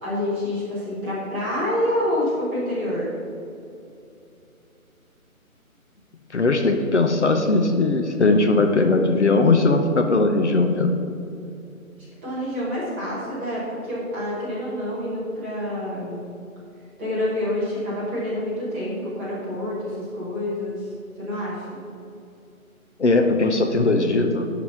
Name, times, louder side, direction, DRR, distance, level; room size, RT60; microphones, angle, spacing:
voice 1, 0.0-3.1 12.0-16.3 17.0-20.9 21.2-21.8, left 1 dB, 10° right, -9 dB, 1.1 m, -27 dB
voice 2, 6.3-10.9 23.0-24.5, left 3 dB, 50° left, 5 dB, 0.8 m, -19 dB
11.0 x 4.1 x 5.6 m, 2.6 s
figure-of-eight pair, 150°, 43 cm